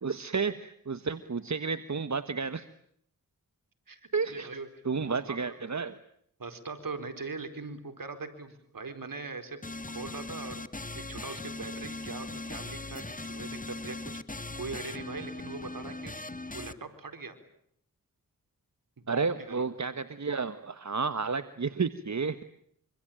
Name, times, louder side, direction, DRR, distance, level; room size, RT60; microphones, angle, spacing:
voice 1, 0.0-2.7 4.1-4.5 4.8-5.9 19.1-22.4, right 5 dB, 55° right, 12 dB, 1.4 m, -31 dB
voice 2, 4.3-4.7 5.1-5.5 6.4-9.6 9.9-10.6 10.9-14.2 14.5-16.1 16.5-17.4 19.0-19.7, right 4 dB, 75° right, 9 dB, 4.5 m, -41 dB
sound 1, 9.6-16.7, left 2 dB, 25° left, 1.7 m, -39 dB
26.0 x 25.5 x 8.8 m, 0.70 s
cardioid pair, 40°, 34 cm